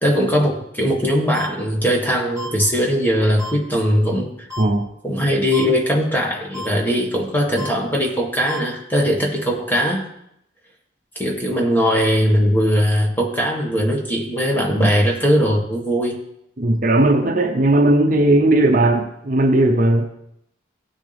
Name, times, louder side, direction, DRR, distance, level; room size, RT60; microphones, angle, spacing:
voice 1, 0.0-4.5 5.0-10.0 11.1-16.2, equal, 10° left, -1 dB, 1.7 m, -20 dB
sound 1, 1.3-1.5 2.4-2.5 3.4-3.5 4.5-4.6 5.5-5.7 6.5-6.7 7.6-7.7 8.5-8.6, left 3 dB, 15° right, 1.8 m, -31 dB
voice 2, 16.6-20.1, right 1 dB, 45° right, 4 dB, 0.7 m, -16 dB
17.0 x 6.4 x 3.5 m, 0.76 s
head